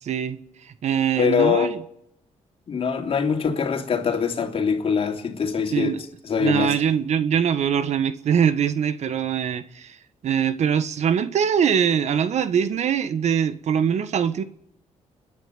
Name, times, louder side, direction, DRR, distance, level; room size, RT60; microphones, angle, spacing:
voice 1, 0.0-1.8 5.7-6.0 6.4-10.0 10.2-14.4, right 8 dB, 65° right, 1.5 m, -23 dB
voice 2, 1.2-1.7 2.7-6.7, left 6 dB, 50° left, 3.1 m, -23 dB
30.0 x 10.5 x 9.3 m
cardioid pair, 100°, 12 cm